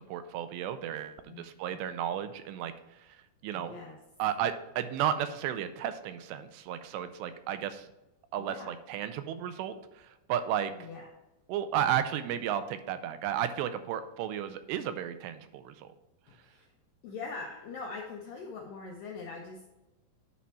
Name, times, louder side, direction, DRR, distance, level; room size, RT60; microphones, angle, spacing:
voice 1, 0.0-3.2 3.4-3.7 4.2-7.9 8.3-10.7 11.5-15.9, right 10 dB, 85° right, 11 dB, 2.7 m, -33 dB
voice 2, 3.5-4.0 8.4-8.7 10.7-11.1 16.3-16.7 17.0-19.7, left 4 dB, 80° left, 0 dB, 2.0 m, -42 dB
9.2 x 4.3 x 4.3 m, 0.97 s
omnidirectional pair, 4.9 m